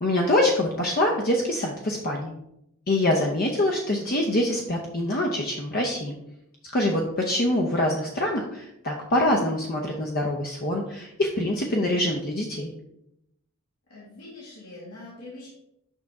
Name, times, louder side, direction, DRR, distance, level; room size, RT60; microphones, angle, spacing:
voice 1, 0.0-2.3 2.9-6.1 6.7-12.7, left 1 dB, 45° left, 0 dB, 0.7 m, -25 dB
voice 2, 13.9-15.5, left 2 dB, 90° left, -6 dB, 2.0 m, -43 dB
6.4 x 5.7 x 3.6 m, 0.81 s
head